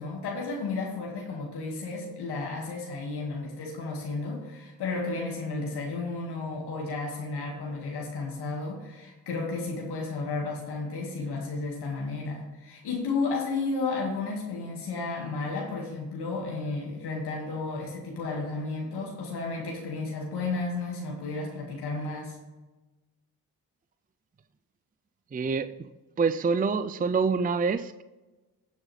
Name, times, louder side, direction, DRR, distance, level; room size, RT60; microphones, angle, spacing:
voice 1, 0.0-22.4, left 3 dB, 85° left, -1 dB, 2.0 m, -33 dB
voice 2, 25.3-25.9 26.2-28.0, right 5 dB, 20° right, 12 dB, 0.5 m, -26 dB
12.5 x 7.4 x 3.3 m, 1.2 s
supercardioid pair, 55°, 39 cm